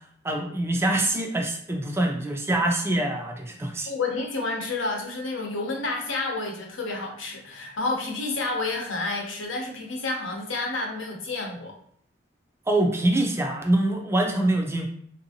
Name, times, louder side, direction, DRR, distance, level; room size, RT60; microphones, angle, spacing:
voice 1, 0.2-3.9 12.7-14.9, right 1 dB, 15° right, 2 dB, 0.4 m, -24 dB
voice 2, 3.9-11.8, left 3 dB, 80° left, 0 dB, 0.8 m, -30 dB
3.5 x 2.7 x 2.7 m, 0.65 s
head